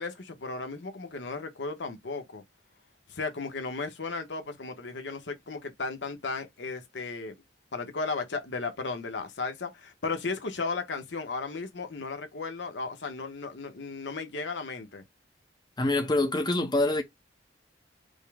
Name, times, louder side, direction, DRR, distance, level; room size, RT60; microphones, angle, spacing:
voice 1, 0.0-2.4 3.1-7.3 7.7-15.0, left 4 dB, 80° left, 0.9 m, -35 dB
voice 2, 15.8-17.0, left 2 dB, 25° left, 0.6 m, -25 dB
5.3 x 2.0 x 3.4 m
head